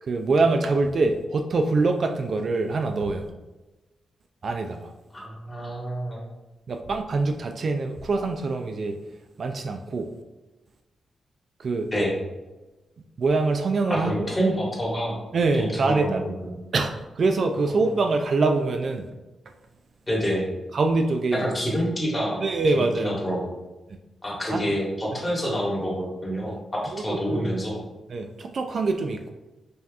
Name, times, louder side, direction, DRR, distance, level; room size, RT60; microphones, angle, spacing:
voice 1, 0.0-3.3 4.4-4.9 6.7-9.0 9.4-10.1 11.6-11.9 13.2-14.4 15.3-16.2 16.7-19.1 20.7-21.5 22.4-23.2 24.5-24.7 25.1-25.2 26.5-26.6 26.9-27.0 27.3-27.5 28.1-29.3, right 3 dB, 55° right, 5 dB, 0.3 m, -24 dB
voice 2, 5.1-6.2 11.9-12.1 13.9-15.2 15.5-16.5 20.1-20.4 21.3-22.4 22.7-23.5 24.2-27.8, equal, 20° left, -4 dB, 1.4 m, -27 dB
5.2 x 2.8 x 2.3 m, 1.1 s
cardioid pair, 95°, 0 cm